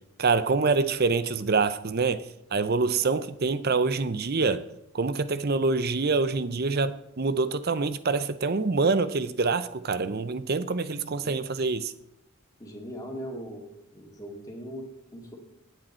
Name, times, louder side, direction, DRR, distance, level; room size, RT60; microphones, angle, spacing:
voice 1, 0.2-4.7 4.9-11.9, right 4 dB, 45° right, 0.6 m, -26 dB
voice 2, 12.6-15.4, equal, 15° left, 2.3 m, -40 dB
18.0 x 8.9 x 4.4 m
head